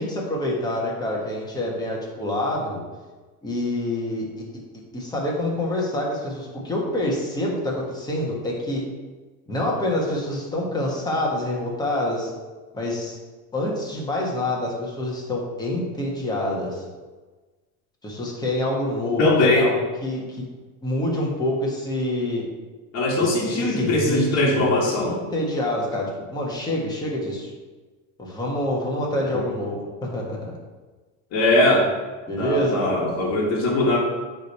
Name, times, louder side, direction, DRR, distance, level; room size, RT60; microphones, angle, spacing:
voice 1, 0.0-2.8 3.4-4.3 4.9-8.8 9.5-12.3 12.7-13.2 13.5-16.8 18.0-20.5 20.8-22.4 23.2-24.7 25.0-27.5 28.2-30.6 32.3-33.0, left 1 dB, 10° left, -3 dB, 1.4 m, -26 dB
voice 2, 19.2-19.7 22.9-25.2 29.3-29.4 31.3-31.9 32.4-34.0, left 2 dB, 40° left, -4 dB, 1.7 m, -20 dB
8.9 x 3.5 x 4.2 m, 1.3 s
cardioid pair, 145°, 41 cm